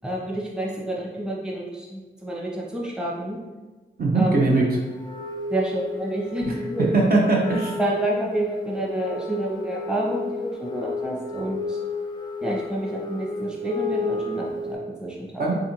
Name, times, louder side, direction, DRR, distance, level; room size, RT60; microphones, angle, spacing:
voice 1, 0.0-3.4 4.1-4.3 5.5-6.9 7.8-11.8 12.4-15.4, right 1 dB, 5° right, -3 dB, 0.8 m, -29 dB
voice 2, 4.0-4.8 6.5-6.6 6.9-7.8 15.4-15.5, right 2 dB, 50° right, -2 dB, 0.7 m, -20 dB
Wind instrument woodwind instrument, 5.0-14.7, left 3 dB, 20° left, 0.5 m, -32 dB
3.5 x 2.5 x 2.9 m, 1.2 s
supercardioid pair, 40°, 20 cm